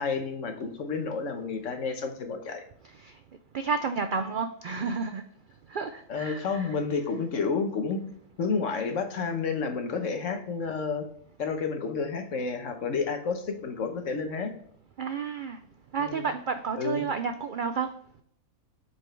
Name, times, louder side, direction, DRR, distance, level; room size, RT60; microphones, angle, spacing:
voice 1, 0.0-2.6 6.1-8.0 8.4-11.0 11.4-14.5 16.0-16.3 16.8-17.0, left 5 dB, 65° left, 6 dB, 1.3 m, -30 dB
voice 2, 3.5-5.2 5.7-6.8 15.0-15.6 15.9-17.9, right 5 dB, 80° right, 8 dB, 0.4 m, -31 dB
7.7 x 4.5 x 3.2 m, 0.65 s
omnidirectional pair, 1.5 m